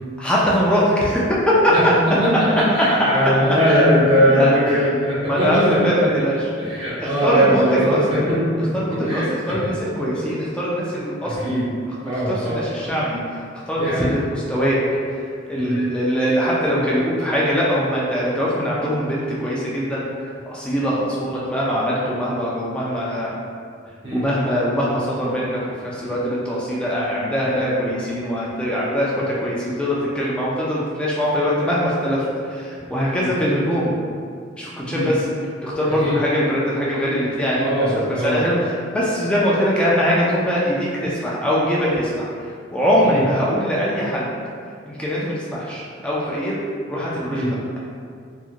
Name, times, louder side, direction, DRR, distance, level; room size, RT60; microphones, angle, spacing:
voice 1, 0.2-1.7 3.7-3.9 4.2-4.8 5.2-6.5 7.0-8.2 8.7-11.6 12.0-13.2 13.7-14.8 15.5-20.1 20.5-23.3 24.1-33.9 34.6-35.3 35.6-42.3 42.7-44.3 44.9-46.6 46.9-47.8, equal, 5° left, -7 dB, 0.3 m, -22 dB
voice 2, 1.7-5.8 6.6-9.6 10.1-10.2 11.2-11.6 12.1-12.6 13.8-14.1 15.6-15.8 24.0-24.2 33.1-33.3 34.9-35.1 36.0-36.2 37.5-38.4 43.0-43.2 47.3-47.5, equal, 25° right, -9 dB, 0.7 m, -20 dB
2.8 x 2.4 x 2.4 m, 2.2 s
head